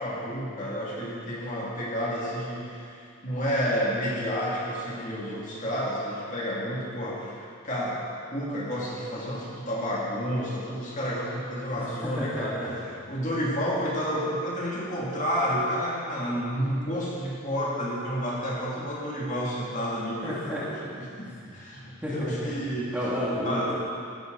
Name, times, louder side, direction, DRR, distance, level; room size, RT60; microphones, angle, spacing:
voice 1, 0.0-12.6 13.1-22.9 23.4-23.7, equal, 35° left, -6 dB, 2.5 m, -30 dB
voice 2, 12.2-12.7 20.2-20.6 21.3-21.5 22.0-22.5 22.9-23.7, left 1 dB, 10° right, -8 dB, 2.3 m, -31 dB
14.5 x 12.0 x 4.0 m, 2.4 s
head